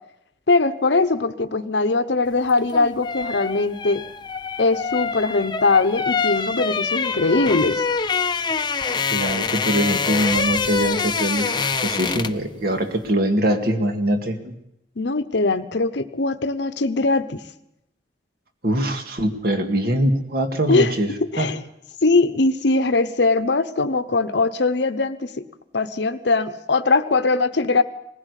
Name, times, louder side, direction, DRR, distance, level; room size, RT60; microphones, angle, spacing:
voice 1, 0.5-4.0 4.6-7.9 15.0-17.4 20.7-20.9 21.3-21.6 22.0-25.3 25.7-27.8, left 3 dB, 80° left, 10 dB, 0.9 m, -21 dB
sound 1, 2.5-12.5 12.8-13.0, left 5 dB, 25° left, 0.7 m, -25 dB
voice 2, 9.1-14.5 18.6-21.1 21.4-21.5, right 1 dB, 55° right, 6 dB, 2.1 m, -23 dB
20.0 x 15.5 x 8.3 m, 0.83 s
head